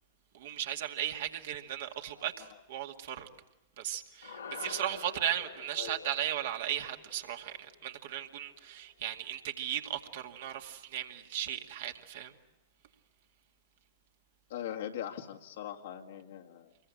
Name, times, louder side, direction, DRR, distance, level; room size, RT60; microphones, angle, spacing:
voice 1, 0.3-3.3 3.8-12.3, right 11 dB, 60° right, 2.2 m, -36 dB
voice 2, 2.0-2.6 5.8-6.2 14.5-16.9, left 10 dB, 60° left, 2.2 m, -42 dB
sound 1, 4.2-8.7, left 6 dB, 80° left, 2.6 m, -48 dB
26.5 x 22.5 x 8.8 m
figure-of-eight pair, 95°, 0 cm